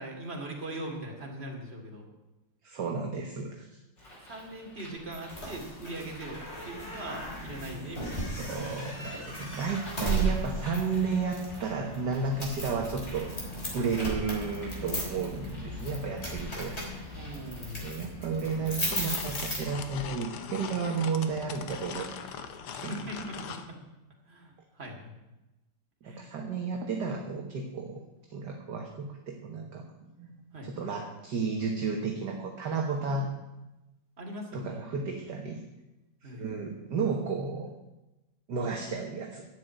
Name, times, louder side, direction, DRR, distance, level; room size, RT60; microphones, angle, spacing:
voice 1, 0.0-2.1 4.2-8.4 13.7-13.9 17.1-17.9 22.7-23.8 24.3-25.1 26.0-26.3 30.5-30.7 33.0-33.2 34.2-34.8 36.2-36.7 38.6-38.7, right 1 dB, 30° right, 0 dB, 2.7 m, -41 dB
voice 2, 2.6-3.8 8.3-13.3 13.7-16.7 17.8-22.1 22.8-23.1 26.0-28.0 28.3-29.9 30.2-33.3 34.5-35.6 36.2-37.7 38.5-39.4, right 5 dB, 55° right, 2 dB, 1.8 m, -32 dB
Bird, 4.0-17.9, left 1 dB, 50° left, 4.6 m, -52 dB
sound 1, 5.1-20.1, right 1 dB, 30° left, 3.6 m, -36 dB
sound 2, 18.4-23.7, left 7 dB, 90° left, 2.0 m, -41 dB
11.5 x 7.9 x 9.1 m, 1.0 s
omnidirectional pair, 2.4 m